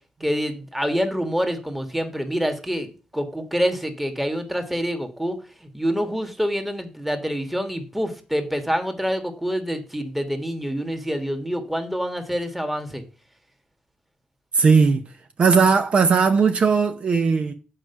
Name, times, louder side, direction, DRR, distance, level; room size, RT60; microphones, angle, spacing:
voice 1, 0.2-5.3 5.6-13.0, equal, 5° right, 1.7 m, -26 dB
voice 2, 14.5-15.0 15.4-17.5, right 5 dB, 50° right, 0.8 m, -17 dB
7.8 x 5.0 x 6.8 m
cardioid pair, 95°, 2 cm